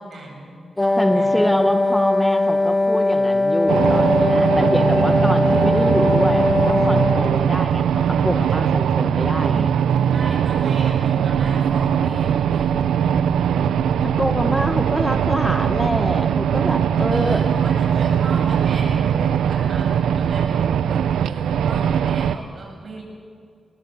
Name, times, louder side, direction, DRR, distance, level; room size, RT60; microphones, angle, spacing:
voice 1, 0.0-1.6 10.1-12.7 17.1-23.0, right 2 dB, 60° right, 0 dB, 7.8 m, -36 dB
Wind instrument woodwind instrument, 0.8-7.5, left 2 dB, 20° left, 0.9 m, -20 dB
voice 2, 1.0-9.8 14.0-17.4, equal, 5° left, 7 dB, 1.5 m, -25 dB
sound 1, 3.7-22.4, right 8 dB, 90° right, 0.6 m, -20 dB
20.5 x 19.5 x 8.4 m, 2.2 s
cardioid pair, 55°, 0 cm